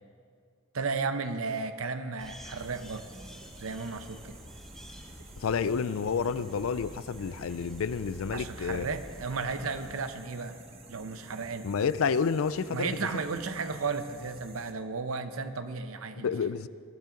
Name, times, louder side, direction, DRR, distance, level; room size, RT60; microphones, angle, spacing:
voice 1, 0.7-3.1 3.6-4.4 8.3-10.5 10.9-11.7 12.7-16.3, right 4 dB, 85° right, 9 dB, 0.8 m, -34 dB
sound 1, 2.2-10.0, equal, ahead, 0.9 m, -48 dB
sound 2, 2.6-14.7, right 3 dB, 30° right, 0.9 m, -52 dB
voice 2, 5.4-9.0 11.6-13.2 16.2-16.7, left 6 dB, 80° left, 16 dB, 0.4 m, -30 dB
20.0 x 10.5 x 3.8 m, 2.2 s
head